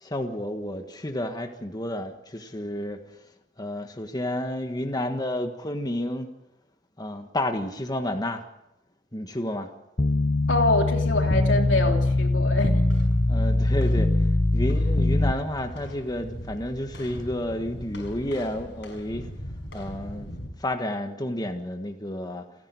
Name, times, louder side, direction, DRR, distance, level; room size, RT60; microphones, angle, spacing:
voice 1, 0.0-3.0 3.6-6.3 7.0-8.4 9.1-9.7 13.3-19.3 19.7-20.3 20.6-22.4, left 1 dB, 20° left, 1.5 m, -31 dB
sound 1, 10.0-15.3, left 2 dB, 45° left, 1.0 m, -22 dB
voice 2, 10.5-12.8, left 2 dB, 80° left, 3.2 m, -25 dB
sound 2, 11.0-20.5, equal, 65° left, 5.9 m, -39 dB
29.0 x 10.5 x 9.6 m
head